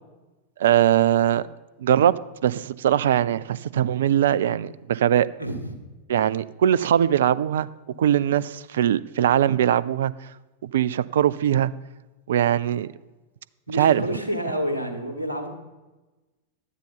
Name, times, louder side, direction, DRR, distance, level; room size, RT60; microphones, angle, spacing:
voice 1, 0.6-1.5 1.8-5.3 6.1-7.7 8.0-10.3 10.6-11.7 12.3-12.9 13.8-14.0, right 10 dB, 60° right, 0.3 m, -21 dB
voice 2, 5.4-5.8 13.7-15.5, equal, 80° right, 1.5 m, -29 dB
12.0 x 9.6 x 3.9 m
figure-of-eight pair, 90°, 0 cm